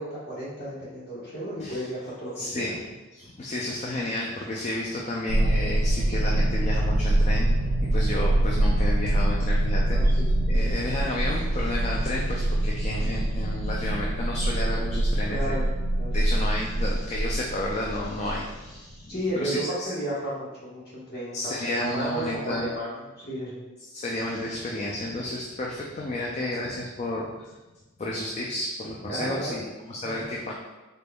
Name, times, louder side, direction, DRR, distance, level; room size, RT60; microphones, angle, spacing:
voice 1, 0.0-2.8 9.9-10.3 10.6-10.9 15.3-15.7 16.0-16.2 19.1-23.6 29.0-29.6 30.0-30.3, right 1 dB, 50° left, -8 dB, 1.3 m, -33 dB
voice 2, 2.4-2.8 3.1-7.5 7.8-15.6 16.1-19.9 21.3-22.7 23.9-27.5 28.0-30.5, left 1 dB, 35° left, -2 dB, 0.3 m, -32 dB
sound 1, 5.3-18.6, right 1 dB, 90° right, 0.4 m, -24 dB
3.9 x 3.4 x 2.2 m, 1.1 s
head